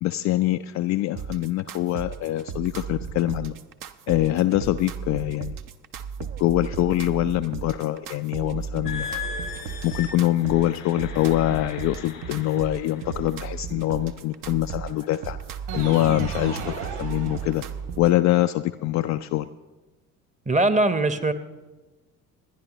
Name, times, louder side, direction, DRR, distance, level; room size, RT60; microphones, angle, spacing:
voice 1, 0.0-3.5 4.1-5.6 6.2-9.2 9.8-15.4 15.7-17.6 18.0-19.5, left 15 dB, 40° left, 8 dB, 0.4 m, -24 dB
sound 1, 1.2-18.1, right 7 dB, 45° right, 0.8 m, -35 dB
sound 2, 8.9-13.4 14.0-14.3 14.9-15.2, left 6 dB, 85° left, 1.6 m, -38 dB
sound 3, 15.7-18.0, right 6 dB, 60° right, 3.5 m, -34 dB
voice 2, 20.5-21.3, right 2 dB, 15° right, 12 dB, 0.9 m, -21 dB
28.0 x 10.5 x 3.0 m, 1.2 s
figure-of-eight pair, 55°, 47 cm